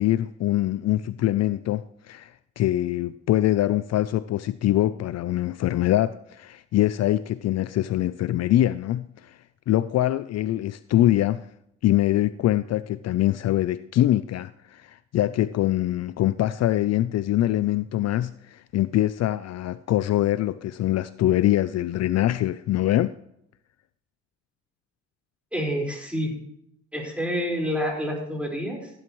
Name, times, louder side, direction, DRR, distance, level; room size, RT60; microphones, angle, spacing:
voice 1, 0.0-9.4 9.7-11.5 11.8-23.2, left 14 dB, 60° left, 0.4 m, -24 dB
voice 2, 25.5-26.3 26.9-28.9, equal, 5° right, 4.6 m, -28 dB
15.5 x 11.0 x 3.1 m
cardioid pair, 90°, 30 cm